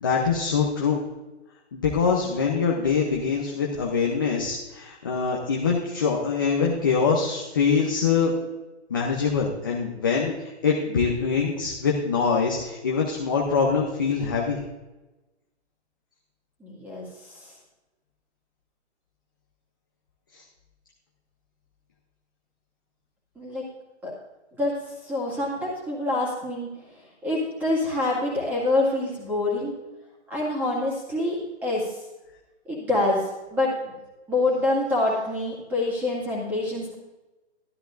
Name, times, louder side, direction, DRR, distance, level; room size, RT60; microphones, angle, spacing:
voice 1, 0.0-1.0 1.7-8.3 8.9-14.6, left 5 dB, 20° left, -2 dB, 0.6 m, -24 dB
voice 2, 16.6-17.5 23.4-23.6 24.0-24.1 24.6-24.7 25.0-26.7 27.2-29.7 30.3-32.0 32.7-33.9 34.3-36.9, left 2 dB, 5° right, -6 dB, 2.0 m, -26 dB
12.5 x 12.5 x 2.5 m, 1.1 s
hypercardioid pair, 165°, 35 cm